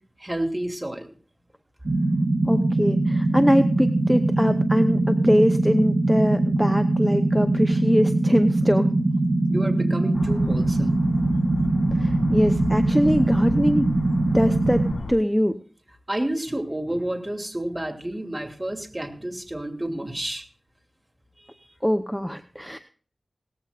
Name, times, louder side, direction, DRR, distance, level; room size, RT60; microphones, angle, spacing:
voice 1, 0.2-1.1 9.5-11.0 16.1-20.4 21.4-21.7, right 1 dB, 20° right, 4 dB, 2.8 m, -30 dB
sound 1, 1.9-14.9, right 2 dB, 55° right, 1.4 m, -22 dB
voice 2, 2.4-9.0 11.9-13.9 14.3-15.6 21.8-22.8, equal, ahead, 8 dB, 0.8 m, -22 dB
sound 2, 10.1-15.1, left 3 dB, 80° left, 3.9 m, -34 dB
18.0 x 15.0 x 2.5 m, 0.42 s
wide cardioid pair, 55°, 0 cm